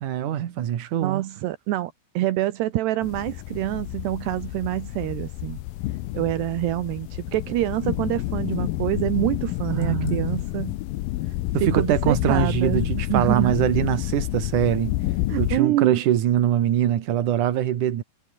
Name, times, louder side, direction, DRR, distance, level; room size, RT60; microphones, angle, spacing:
voice 1, 0.0-1.2 9.7-10.4 11.5-14.9 15.4-18.0, right 11 dB, 55° right, 2.8 m, -23 dB
voice 2, 1.0-5.6 6.1-10.8 11.6-12.8 13.1-13.6 15.3-16.0, right 15 dB, 80° right, 3.2 m, -26 dB
sound 1, 3.0-15.6, left 17 dB, 75° left, 2.2 m, -29 dB
omnidirectional pair, 4.9 m